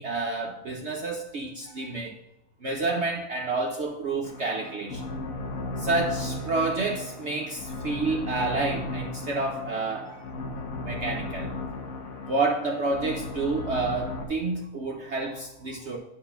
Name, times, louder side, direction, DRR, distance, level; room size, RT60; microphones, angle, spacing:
voice 1, 0.0-2.1 2.6-5.0 5.8-10.2 10.8-11.5 12.2-16.0, right 3 dB, 55° right, 1 dB, 0.9 m, -29 dB
sound 1, 4.2-14.2, left 2 dB, 60° left, 1.4 m, -35 dB
9.4 x 4.2 x 5.8 m, 0.95 s
omnidirectional pair, 1.7 m